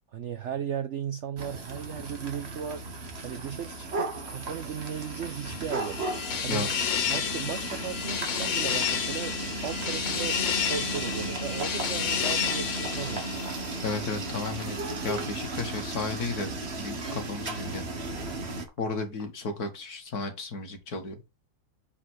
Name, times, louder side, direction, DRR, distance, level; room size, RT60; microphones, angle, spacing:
voice 1, 0.1-2.8 3.2-6.0 6.4-6.7 7.1-9.4 9.6-13.2, right 8 dB, 75° right, 0.6 m, -36 dB
sound 1, 1.4-18.7, right 2 dB, 40° right, 1.5 m, -35 dB
sound 2, 1.8-2.3 2.6-2.9 3.4-4.6 4.9-5.1 5.5-5.7 6.1-6.2 6.6-7.3 7.7-10.7 10.9-11.7 12.0-12.6 12.9-13.7 14.2-14.8 15.1-15.3 15.6-16.1 16.4-16.5 16.7-17.0 17.3-19.2, right 1 dB, 15° right, 1.4 m, -50 dB
sound 3, 5.1-14.2, left 8 dB, 85° left, 1.8 m, -31 dB
voice 2, 13.8-17.8 18.8-21.2, left 3 dB, 55° left, 2.0 m, -34 dB
5.7 x 4.9 x 6.2 m
omnidirectional pair, 2.0 m